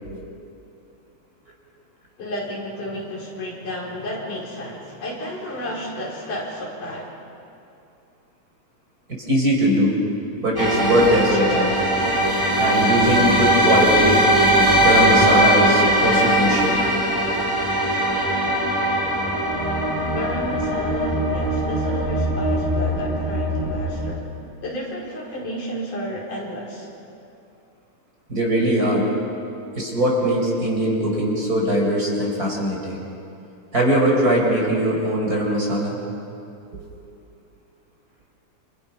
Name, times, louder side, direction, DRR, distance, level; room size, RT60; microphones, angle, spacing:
voice 1, 2.2-7.1 20.1-24.2 24.6-26.9, equal, 75° left, -4 dB, 6.1 m, -32 dB
voice 2, 9.1-9.9 10.4-11.7 12.6-14.3 14.8-16.8 28.3-29.1 29.7-33.0 33.7-36.0 36.7-36.9, equal, 25° right, -2 dB, 4.8 m, -21 dB
sound 1, 10.6-24.1, right 1 dB, 5° right, 4.4 m, -20 dB
28.5 x 27.5 x 5.9 m, 2.7 s
omnidirectional pair, 3.6 m